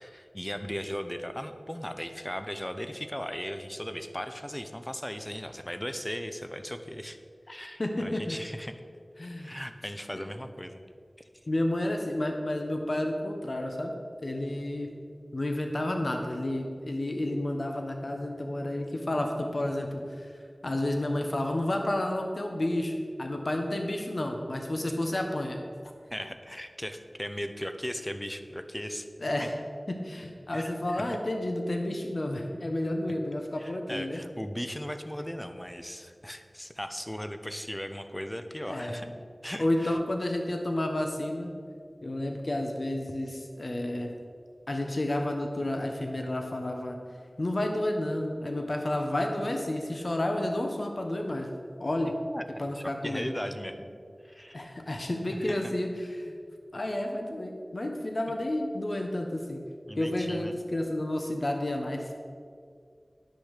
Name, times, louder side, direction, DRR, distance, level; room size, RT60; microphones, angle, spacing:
voice 1, 0.0-7.2 7.5-8.7 9.4-10.8 26.1-29.1 30.5-31.1 33.6-39.1 39.4-40.0 52.3-52.4 52.7-54.0 54.2-54.7 55.4-55.6 59.9-60.5, equal, 15° left, 8 dB, 0.8 m, -37 dB
voice 2, 7.8-8.4 9.2-9.5 10.1-10.2 11.5-13.9 14.2-14.9 15.3-20.3 20.6-25.6 29.2-29.5 29.9-34.2 38.7-39.0 39.6-41.5 42.0-44.1 44.7-47.0 47.4-51.5 51.8-52.1 52.6-53.3 54.5-56.3 56.7-59.6 60.0-62.1, left 1 dB, 65° left, 3 dB, 1.1 m, -31 dB
10.0 x 6.5 x 6.6 m, 2.2 s
wide cardioid pair, 45°, 0 cm